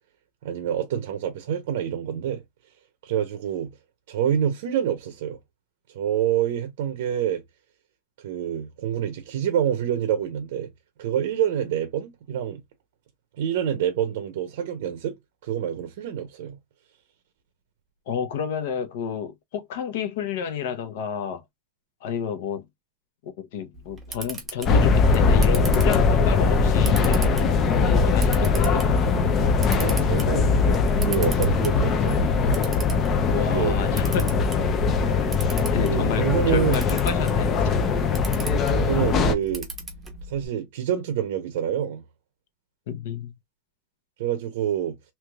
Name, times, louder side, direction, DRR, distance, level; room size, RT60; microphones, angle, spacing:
voice 1, 0.4-2.4 3.0-3.7 4.1-5.4 5.9-7.4 8.2-10.7 11.0-12.6 13.4-15.2 15.4-16.6 29.8-30.6 31.0-32.3 33.5-33.8 34.8-34.9 35.9-36.9 38.7-39.7 40.3-42.0 44.2-44.9, right 9 dB, 70° right, 0.7 m, -27 dB
voice 2, 18.1-21.4 22.0-22.6 23.2-28.9 33.2-34.3 35.7-37.7 42.9-43.3, left 7 dB, 60° left, 0.8 m, -30 dB
Camera, 23.7-40.5, right 2 dB, 10° right, 0.8 m, -40 dB
sound 1, 24.6-39.3, left 4 dB, 25° left, 0.4 m, -21 dB
3.3 x 3.0 x 2.3 m
supercardioid pair, 175°, 0 cm